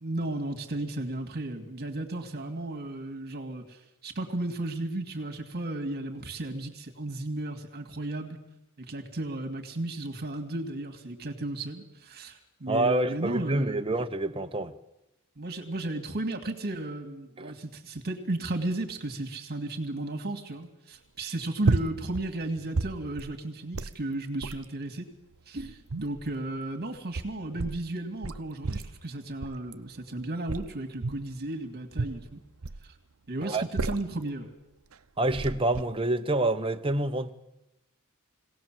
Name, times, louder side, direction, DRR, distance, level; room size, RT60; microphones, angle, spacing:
voice 1, 0.0-8.4 8.8-13.8 15.4-25.1 25.5-32.4 33.3-34.5, right 2 dB, 50° right, 2.4 m, -34 dB
voice 2, 12.7-14.7 17.4-17.6 33.4-33.6 35.2-37.3, right 2 dB, 25° right, 1.0 m, -27 dB
sound 1, 21.6-22.3 22.6-23.4 23.7-24.0 24.4-24.7 25.3-26.3 27.0-27.8 28.2-29.0 29.4-29.7 30.5-31.3 31.9-32.9 33.5-34.2 34.9-35.0 35.3-35.8, right 3 dB, 70° right, 0.8 m, -32 dB
22.0 x 17.5 x 7.7 m
head